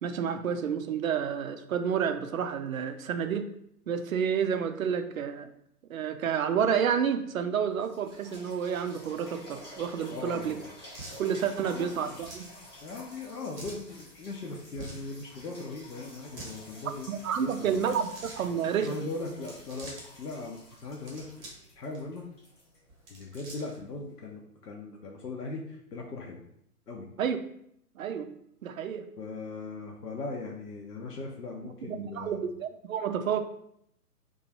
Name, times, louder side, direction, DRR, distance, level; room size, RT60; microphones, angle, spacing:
voice 1, 0.0-3.5 3.9-5.5 5.9-10.6 11.2-12.4 17.1-19.1 27.2-27.4 28.0-28.3 28.6-29.1 31.8-33.4, right 7 dB, 60° right, 8 dB, 0.5 m, -30 dB
sound 1, 7.2-7.3 7.7-23.5 24.1-24.2, left 1 dB, 15° left, 0.5 m, -50 dB
voice 2, 10.1-10.7 11.7-12.2 12.8-17.1 17.4-17.8 18.6-21.3 21.8-22.3 23.1-26.4 26.9-27.1 29.2-32.4, left 3 dB, 75° left, 0 dB, 0.7 m, -39 dB
sound 2, 10.9-11.2 12.2-12.5 13.6-13.8 14.7-15.1 16.2-16.6 17.8-18.5 19.3-20.1 20.9-21.6 21.9-22.0 22.9-23.8, right 2 dB, 25° right, 0.7 m, -45 dB
3.0 x 2.4 x 4.0 m, 0.73 s
figure-of-eight pair, 125°, 47 cm